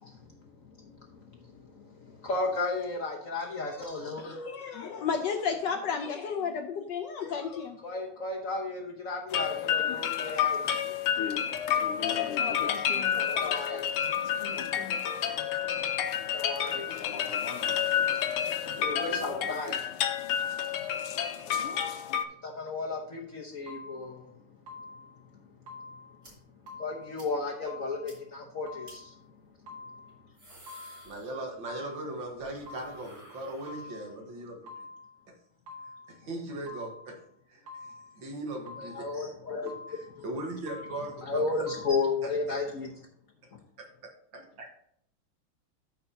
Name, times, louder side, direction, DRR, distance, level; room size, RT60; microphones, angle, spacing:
voice 1, 0.0-4.5 7.8-10.8 13.2-14.1 16.3-17.7 18.8-19.9 22.4-24.3 26.8-29.1 38.8-40.4 41.2-42.9 43.5-43.6, left 3 dB, 50° left, -1 dB, 1.1 m, -34 dB
voice 2, 4.2-7.8, left 6 dB, 70° left, 6 dB, 1.1 m, -32 dB
sound 1, 9.3-22.2, left 9 dB, 85° left, 1.7 m, -29 dB
sound 2, 23.7-24.2 24.7-25.2 25.7-26.2 26.7-27.2 27.7-28.2 28.7-29.2 29.7-30.2 30.7-31.2 31.7-32.2 32.7-33.2 33.7-34.2 34.7-35.2 35.7-36.2 36.7-37.2 37.7-38.2 38.7-39.2 39.7-40.2 40.7-41.2 41.7-41.9, left 3 dB, 85° right, 2.7 m, -47 dB
sound 3, 26.2-26.3 26.7-26.8 27.2-27.3 27.6-27.7 28.1-28.2 28.8-29.0 30.1-31.8 32.1-34.2, right 1 dB, 35° right, 3.5 m, -54 dB
voice 3, 31.0-34.9 36.1-37.2 37.5-39.1 39.6-41.7 42.2-42.6 44.3-44.7, right 2 dB, 60° right, 2 dB, 2.2 m, -39 dB
13.5 x 5.6 x 2.8 m, 0.66 s
omnidirectional pair, 2.4 m